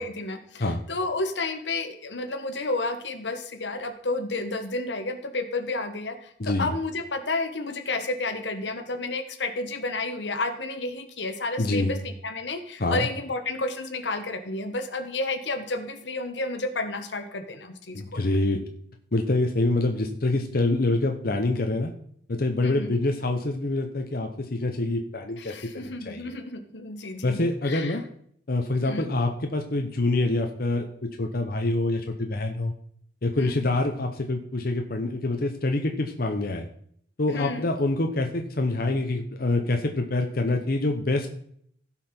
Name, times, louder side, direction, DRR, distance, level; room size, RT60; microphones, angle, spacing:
voice 1, 0.0-18.3 22.6-22.9 25.4-28.0 28.8-29.1 33.3-33.5 37.3-37.7, left 2 dB, 85° left, 7 dB, 1.4 m, -31 dB
voice 2, 6.4-6.7 11.6-11.9 12.8-13.1 17.9-18.6 19.1-21.9 22.3-26.3 27.2-28.0 28.5-30.8 31.2-32.7 33.2-36.7 37.2-41.3, left 2 dB, 55° left, 4 dB, 0.9 m, -26 dB
16.0 x 5.8 x 4.4 m, 0.65 s
head